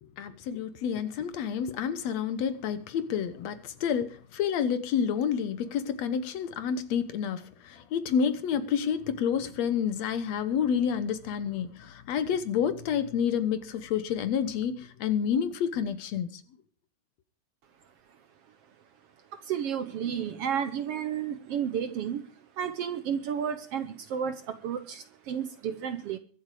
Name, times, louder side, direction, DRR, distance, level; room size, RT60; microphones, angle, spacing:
voice 1, 0.0-16.4, left 7 dB, 70° left, 2.1 m, -29 dB
voice 2, 19.3-22.3 22.6-26.2, right 8 dB, 65° right, 1.6 m, -32 dB
23.0 x 7.9 x 4.8 m
omnidirectional pair, 3.4 m